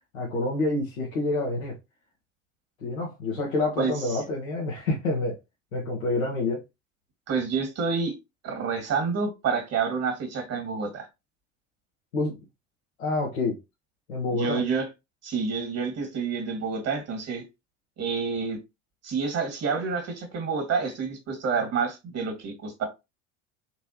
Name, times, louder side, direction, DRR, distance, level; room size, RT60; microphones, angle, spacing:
voice 1, 0.1-1.7 2.8-5.3 5.7-6.6 12.1-12.4 13.0-13.6 14.1-14.6, left 2 dB, 80° left, 1.4 m, -27 dB
voice 2, 7.3-8.1 8.4-11.1 14.3-14.9 15.2-17.4 18.0-18.6 19.0-22.9, right 5 dB, 40° right, 2.0 m, -28 dB
4.3 x 3.2 x 2.9 m
hypercardioid pair, 75°, 39 cm